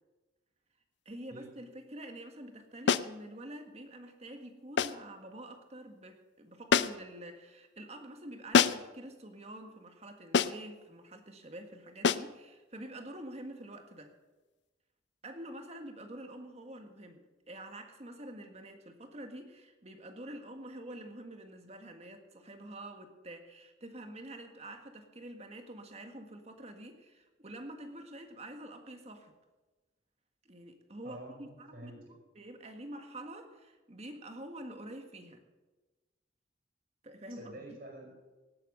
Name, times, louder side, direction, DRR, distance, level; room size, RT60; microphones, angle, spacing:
voice 1, 1.0-14.1 15.2-29.3 30.4-35.4 37.0-37.7, right 1 dB, 35° right, 5 dB, 1.7 m, -47 dB
sound 1, 2.9-3.2 4.8-5.1 6.7-7.1 8.5-9.0 10.3-10.7 12.0-12.4, left 6 dB, 70° left, 0.5 m, -27 dB
voice 2, 31.0-32.0 37.4-38.1, right 1 dB, 55° right, -2 dB, 4.9 m, -47 dB
18.0 x 8.8 x 6.6 m, 1.2 s
head